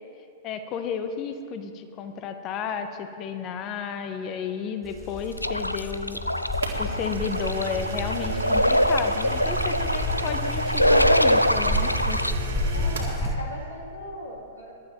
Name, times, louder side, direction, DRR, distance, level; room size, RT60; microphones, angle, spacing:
voice 1, 0.4-6.2 6.8-12.2, left 6 dB, 35° left, 8 dB, 1.0 m, -32 dB
sound 1, 4.8-13.4, equal, ahead, 1.2 m, -30 dB
sound 2, 5.4-12.3, equal, 90° left, 0.3 m, -24 dB
sound 3, 6.6-13.2, right 3 dB, 65° right, 1.9 m, -37 dB
voice 2, 12.7-14.7, left 1 dB, 75° left, -3 dB, 3.0 m, -38 dB
21.5 x 12.0 x 3.0 m, 2.6 s
figure-of-eight pair, 100°, 0 cm